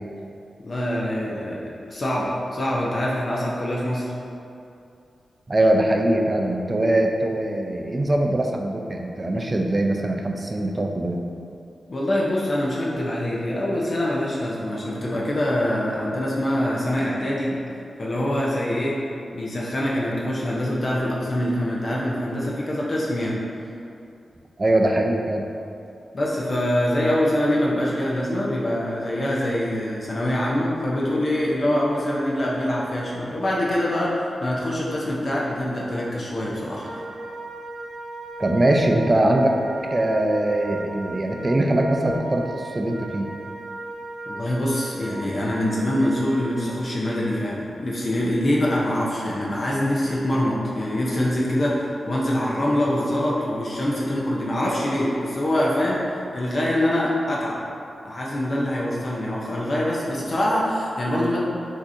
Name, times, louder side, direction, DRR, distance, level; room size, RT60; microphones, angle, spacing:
voice 1, 0.6-4.1 11.9-17.6 18.0-19.0 19.3-23.4 26.1-37.0 44.3-57.6 58.0-61.4, left 1 dB, 50° left, -5 dB, 0.7 m, -24 dB
voice 2, 5.5-11.2 24.6-25.4 38.4-39.6 39.9-43.3, right 1 dB, 30° right, 2 dB, 0.4 m, -22 dB
Wind instrument woodwind instrument, 36.8-46.7, right 2 dB, 75° right, 0.7 m, -37 dB
5.9 x 2.8 x 2.6 m, 2.6 s
cardioid pair, 70°, 0 cm